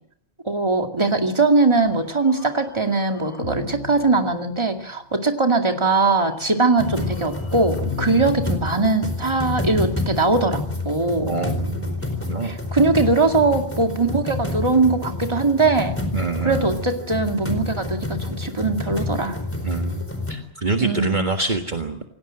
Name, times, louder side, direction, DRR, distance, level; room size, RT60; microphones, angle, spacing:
voice 1, 0.4-11.4 12.4-15.9 16.4-19.4 20.8-21.3, right 3 dB, 25° right, 4 dB, 2.4 m, -21 dB
sound 1, 1.8-5.1 6.2-9.4, left 3 dB, 85° left, 3.2 m, -37 dB
sound 2, 6.8-20.3, left 2 dB, 10° left, 4.4 m, -29 dB
voice 2, 11.2-11.9 12.3-12.5 16.1-16.8 19.6-22.0, right 3 dB, 45° right, 3 dB, 1.8 m, -26 dB
27.5 x 17.5 x 7.6 m, 0.68 s
omnidirectional pair, 1.1 m